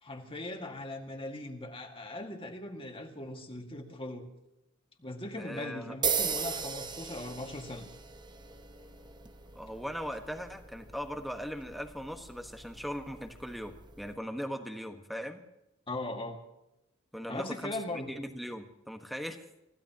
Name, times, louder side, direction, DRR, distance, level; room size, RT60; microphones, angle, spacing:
voice 1, 0.0-4.3 5.0-7.9 15.9-16.4 17.3-18.1, left 1 dB, 25° left, 3 dB, 2.0 m, -39 dB
voice 2, 5.4-5.9 9.5-15.4 17.1-19.4, equal, ahead, 5 dB, 1.4 m, -39 dB
sound 1, 6.0-14.1, right 6 dB, 20° right, 0.9 m, -38 dB
30.0 x 16.0 x 3.0 m, 0.91 s
head